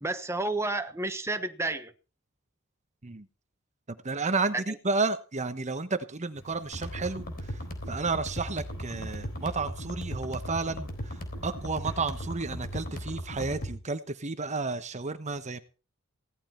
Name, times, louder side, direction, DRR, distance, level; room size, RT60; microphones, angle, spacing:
voice 1, 0.0-1.9 4.5-4.8, right 2 dB, 15° right, 1.2 m, -31 dB
voice 2, 3.9-7.6 7.9-11.2 11.4-15.6, right 3 dB, 35° right, 1.0 m, -32 dB
sound 1, 6.3-13.2, equal, 65° left, 4.0 m, -52 dB
sound 2, 6.7-13.7, equal, 45° left, 3.9 m, -37 dB
17.0 x 12.5 x 4.4 m
head